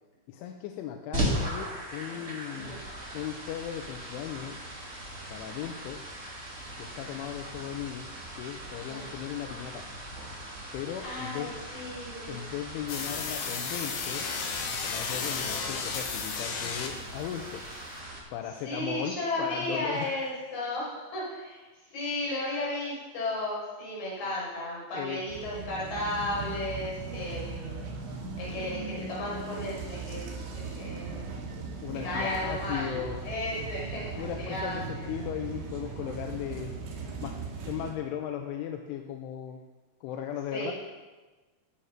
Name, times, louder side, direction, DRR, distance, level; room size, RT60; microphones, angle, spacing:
voice 1, 0.3-2.8 3.1-4.6 5.3-6.1 6.8-8.1 8.3-9.9 10.7-11.5 12.3-14.3 14.9-17.6 18.3-20.4 24.9-25.2 31.8-33.3 34.2-36.7 37.2-39.6 40.0-40.7, left 10 dB, 85° left, 4 dB, 3.3 m, -37 dB
sound 1, 1.1-18.2, right 1 dB, 25° right, 1.7 m, -39 dB
voice 2, 11.0-12.4 18.6-21.6 21.9-27.9 28.4-30.3 30.5-31.6 32.0-33.0 33.2-35.2 40.5-40.7, left 1 dB, 45° left, -7 dB, 7.8 m, -34 dB
sound 2, 12.9-17.2, left 5 dB, 60° left, 2.1 m, -33 dB
sound 3, 25.3-37.9, right 4 dB, 75° right, 4.1 m, -38 dB
19.0 x 8.7 x 5.9 m, 1.3 s
omnidirectional pair, 5.5 m